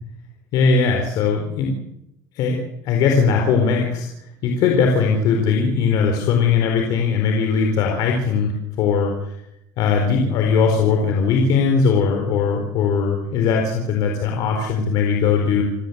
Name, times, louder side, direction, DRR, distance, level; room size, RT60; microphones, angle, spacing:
voice 1, 0.5-1.7 2.3-4.1 4.4-9.4 9.8-15.6, left 5 dB, 45° left, 2 dB, 4.4 m, -19 dB
29.0 x 17.0 x 8.2 m, 0.83 s
cardioid pair, 175°, 8 cm